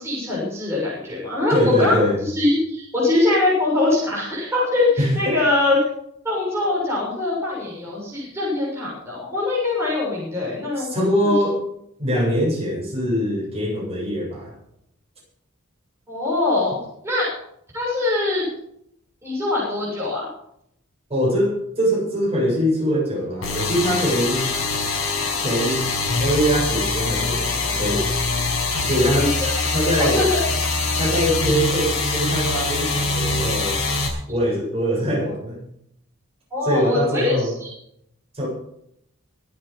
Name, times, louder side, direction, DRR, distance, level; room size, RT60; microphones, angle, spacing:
voice 1, 0.0-5.8 6.2-10.9 11.2-11.3 16.1-16.8 17.0-17.3 17.7-18.5 19.2-20.3 29.2-29.6 30.0-30.4 36.5-37.7, left 2 dB, 15° right, -6 dB, 6.9 m, -22 dB
voice 2, 1.5-2.2 5.0-5.4 10.8-11.6 12.0-14.5 21.1-24.5 25.4-25.9 26.2-28.1 28.8-29.3 29.7-30.2 31.0-33.8 34.3-35.6 36.6-37.5 38.3-38.5, equal, 30° right, -3 dB, 7.9 m, -22 dB
sound 1, 23.4-34.1, left 3 dB, 85° left, 5.7 m, -23 dB
24.5 x 8.9 x 5.3 m, 0.72 s
head